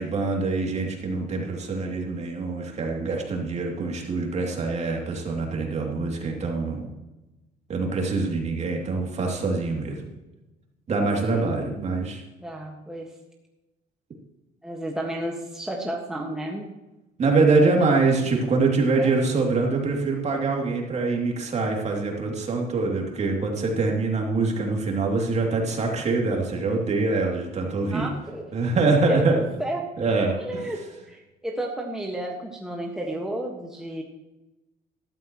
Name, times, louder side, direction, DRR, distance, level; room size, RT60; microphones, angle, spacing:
voice 1, 0.0-6.9 7.7-10.0 10.9-12.2 17.2-28.1 28.5-29.4 30.0-30.4, right 3 dB, 40° right, 0 dB, 2.8 m, -24 dB
voice 2, 11.1-11.6 12.4-13.1 14.6-16.7 17.8-17.9 19.0-19.2 27.9-28.5 29.1-29.9 30.4-30.8 31.1-34.0, right 1 dB, 5° right, 0 dB, 1.5 m, -32 dB
13.0 x 12.5 x 3.1 m, 1.0 s
cardioid pair, 110°, 17 cm